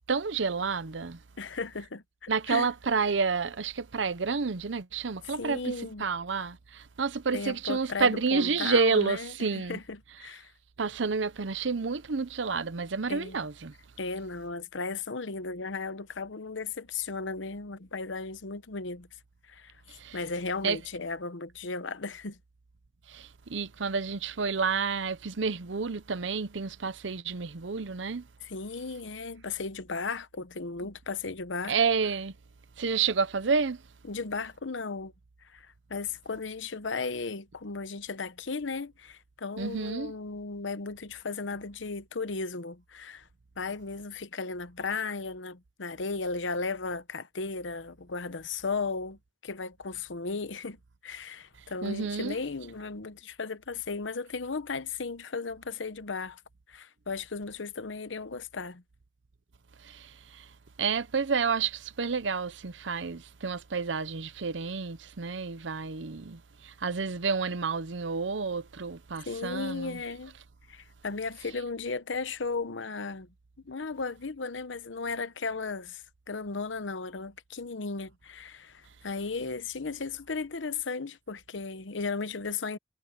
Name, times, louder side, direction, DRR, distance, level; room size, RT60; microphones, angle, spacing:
voice 1, 0.1-1.2 2.3-9.8 10.8-13.7 19.9-20.2 20.6-20.8 23.1-28.2 31.7-32.3 32.8-33.8 39.6-40.1 51.8-52.4 59.8-60.5 60.8-70.0, right 5 dB, 80° right, 0.8 m, -30 dB
voice 2, 1.4-2.7 5.4-6.0 7.3-10.5 13.1-13.4 14.0-19.1 19.5-22.4 28.4-31.8 34.1-35.1 35.5-43.3 43.6-50.8 51.0-56.4 56.7-58.8 69.3-70.3 70.7-73.3 73.6-82.8, left 4 dB, 90° left, 0.9 m, -35 dB
head